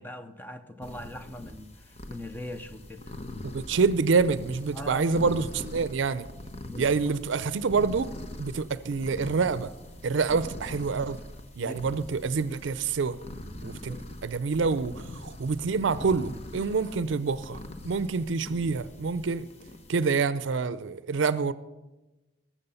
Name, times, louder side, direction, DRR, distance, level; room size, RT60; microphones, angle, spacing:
voice 1, 0.0-3.1 4.7-5.2 6.6-7.2 11.6-11.9 13.6-14.0, left 1 dB, 10° left, 0.6 m, -41 dB
sound 1, 0.8-20.1, left 1 dB, 35° left, 0.9 m, -43 dB
voice 2, 3.5-6.3 6.8-8.1 8.4-9.7 10.0-11.2 11.6-13.2 13.6-19.5 19.9-21.5, right 4 dB, 85° right, 0.5 m, -27 dB
20.0 x 7.3 x 5.6 m
head